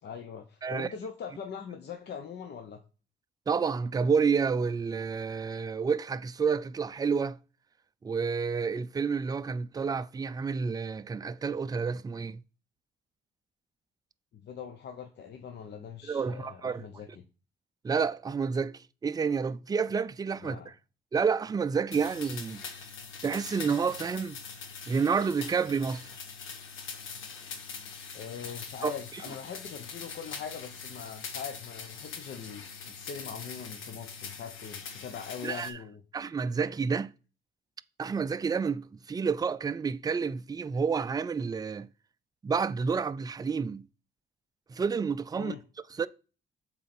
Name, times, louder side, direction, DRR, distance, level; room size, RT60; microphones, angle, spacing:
voice 1, 0.0-2.8 14.3-17.2 20.4-20.7 28.1-36.0 45.3-45.6, left 7 dB, 60° left, 0.9 m, -42 dB
voice 2, 3.5-7.4 8.0-12.4 16.1-16.9 17.8-20.7 21.1-22.6 23.2-24.4 24.9-26.1 28.8-28.9 35.4-35.8 36.1-37.1 38.0-41.9 42.4-43.8 44.7-45.5 46.0-46.1, right 5 dB, 20° right, 0.4 m, -29 dB
sound 1, 21.9-35.7, left 5 dB, 80° left, 1.4 m, -43 dB
7.4 x 4.0 x 4.4 m
cardioid pair, 90°, 20 cm